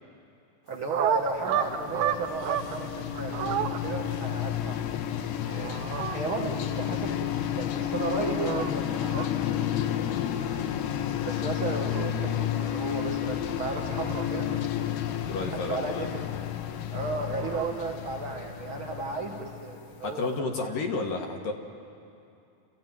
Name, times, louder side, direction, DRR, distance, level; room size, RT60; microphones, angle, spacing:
voice 1, 0.7-4.8 5.4-5.8 6.1-8.8 9.1-9.3 11.2-14.5 15.7-16.2 16.9-20.3, right 3 dB, 50° right, 2 dB, 1.5 m, -34 dB
sound 1, 0.7-2.8 3.1-3.8 5.4-6.2 7.8-8.7 9.0-9.3 11.4-12.0 13.6-14.6 17.0-17.8, right 10 dB, 75° right, 2.2 m, -32 dB
sound 2, 1.0-20.0, left 10 dB, 85° left, 3.1 m, -31 dB
voice 2, 15.3-16.1 20.0-21.5, left 3 dB, 65° left, 3 dB, 2.9 m, -31 dB
29.5 x 14.5 x 9.2 m, 2.6 s
omnidirectional pair, 4.5 m